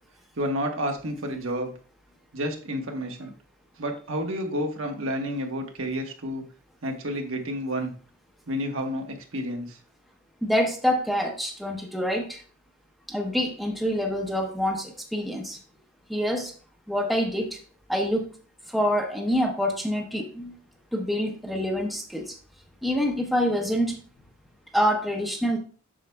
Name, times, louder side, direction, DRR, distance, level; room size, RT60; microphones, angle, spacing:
voice 1, 0.4-1.7 2.3-3.3 3.8-6.5 6.8-7.9 8.5-9.8, equal, 70° right, 3 dB, 1.1 m, -30 dB
voice 2, 10.4-12.4 13.1-15.6 16.1-16.5 16.9-17.6 17.9-18.3 18.7-20.5 20.9-22.3 22.8-24.0 24.7-25.6, equal, ahead, 1 dB, 0.8 m, -26 dB
7.5 x 6.5 x 2.2 m, 0.41 s
head